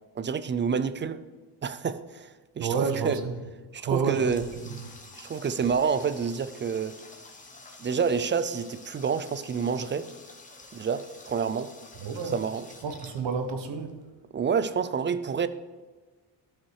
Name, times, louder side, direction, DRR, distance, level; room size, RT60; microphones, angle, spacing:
voice 1, 0.2-1.2 1.6-3.2 3.7-4.4 5.2-7.0 7.8-10.1 10.7-11.7 12.3-12.6 14.3-15.5, right 6 dB, 30° right, 14 dB, 0.4 m, -28 dB
voice 2, 2.6-3.4 3.8-4.9 12.0-12.4 12.8-14.1, right 5 dB, 80° right, 6 dB, 1.3 m, -30 dB
Water tap faucet, 3.7-13.9, left 3 dB, 20° left, 1.1 m, -49 dB
12.5 x 5.7 x 4.7 m, 1.3 s
cardioid pair, 125°, 43 cm